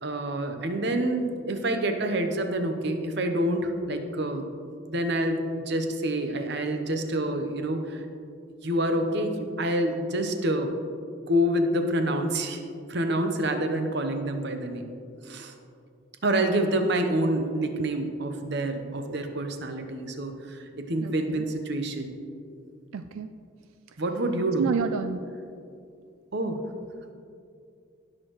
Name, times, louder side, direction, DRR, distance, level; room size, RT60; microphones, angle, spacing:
voice 1, 0.0-4.5 4.9-8.0 8.6-10.7 11.3-12.6 12.9-14.9 15.2-15.5 16.2-22.1 24.0-24.7 26.3-26.6, right 1 dB, 55° right, 6 dB, 0.9 m, -27 dB
voice 2, 21.0-21.4 22.9-23.3 24.6-25.2, right 6 dB, 85° right, 9 dB, 0.4 m, -30 dB
17.5 x 6.5 x 3.1 m, 2.4 s
head